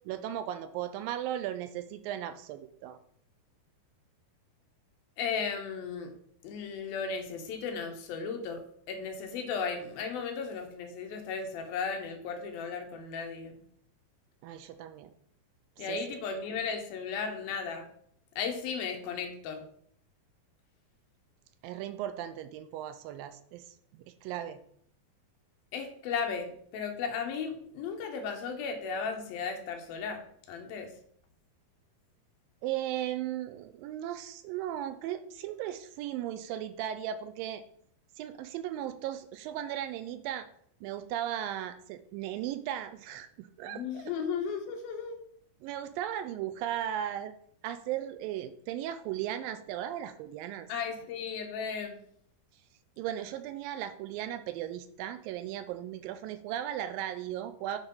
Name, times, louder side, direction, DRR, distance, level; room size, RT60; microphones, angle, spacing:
voice 1, 0.1-3.0 14.4-15.1 15.8-16.0 21.6-23.7 24.1-24.6 32.6-37.6 38.2-40.5 40.8-44.1 45.6-47.3 47.6-50.7 53.0-57.8, right 11 dB, 80° right, 10 dB, 2.2 m, -36 dB
voice 2, 5.2-6.1 6.4-8.6 8.9-13.6 15.8-17.9 18.4-19.6 25.7-30.2 30.5-30.9 43.7-45.2 50.7-52.0, left 5 dB, 75° left, 4 dB, 2.9 m, -35 dB
10.0 x 4.0 x 5.5 m, 0.64 s
omnidirectional pair, 4.3 m